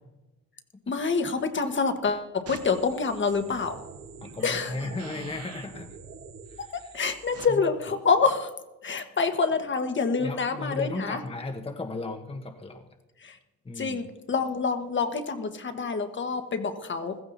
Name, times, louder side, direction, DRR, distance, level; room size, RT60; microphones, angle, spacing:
voice 1, 0.9-3.8 4.4-4.7 6.7-8.5 8.8-11.2 13.2-13.4 13.8-17.2, left 4 dB, 40° left, 7 dB, 1.4 m, -27 dB
sound 1, 2.5-7.5, right 5 dB, 55° right, 1.5 m, -44 dB
voice 2, 4.2-6.0 6.5-6.9 7.5-7.6 10.2-12.9 13.6-14.1, left 3 dB, 20° left, 5 dB, 1.1 m, -36 dB
15.5 x 14.5 x 4.1 m, 1.1 s
cardioid pair, 90°, 30 cm